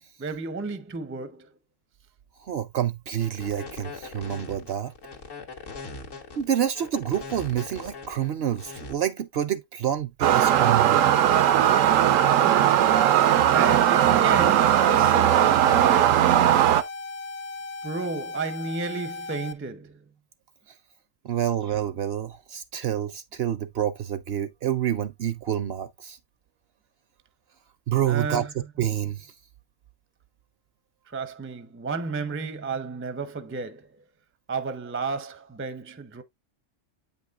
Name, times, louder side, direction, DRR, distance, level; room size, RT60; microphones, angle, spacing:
voice 1, 0.2-1.5 12.2-12.9 13.5-16.4 17.8-20.0 28.1-28.5 31.1-34.0 34.5-36.2, right 4 dB, 15° right, 0.4 m, -33 dB
voice 2, 2.4-4.9 6.4-11.1 21.2-26.2 27.9-28.5 28.8-29.3, right 10 dB, 65° right, 0.7 m, -28 dB
sound 1, 3.1-8.9, left 3 dB, 80° left, 1.9 m, -40 dB
sound 2, 10.2-16.8, right 11 dB, 85° right, 1.0 m, -19 dB
sound 3, 10.5-19.5, left 3 dB, 50° left, 0.5 m, -37 dB
8.4 x 5.4 x 2.4 m
omnidirectional pair, 1.3 m